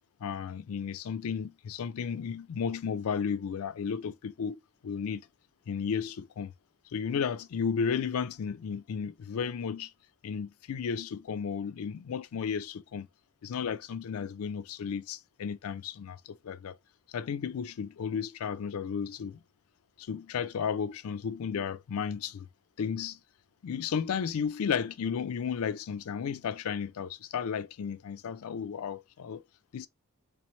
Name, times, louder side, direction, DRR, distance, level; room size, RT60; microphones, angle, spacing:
voice 1, 0.2-5.3 5.7-6.5 6.9-9.9 10.2-13.1 13.4-16.7 17.1-19.4 20.0-22.5 22.8-23.2 23.6-29.4 29.7-29.9, left 6 dB, 70° left, 0.4 m, -33 dB
3.4 x 3.1 x 3.0 m
head